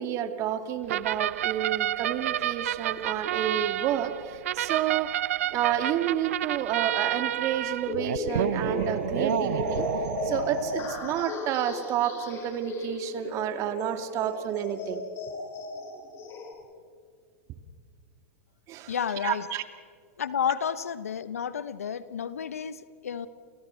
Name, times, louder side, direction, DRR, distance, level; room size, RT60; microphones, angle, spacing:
voice 1, 0.0-5.1 5.5-9.8 10.2-15.0 18.7-18.9 19.2-19.6, right 10 dB, 40° right, 9 dB, 2.2 m, -30 dB
sound 1, 0.9-11.2, right 12 dB, 70° right, 0.6 m, -30 dB
sound 2, 7.8-16.5, left 3 dB, 35° left, 7.0 m, -35 dB
voice 2, 18.9-19.5 20.2-23.3, left 8 dB, 80° left, 15 dB, 1.2 m, -31 dB
29.0 x 29.0 x 4.6 m, 2.1 s
hypercardioid pair, 105°, 8 cm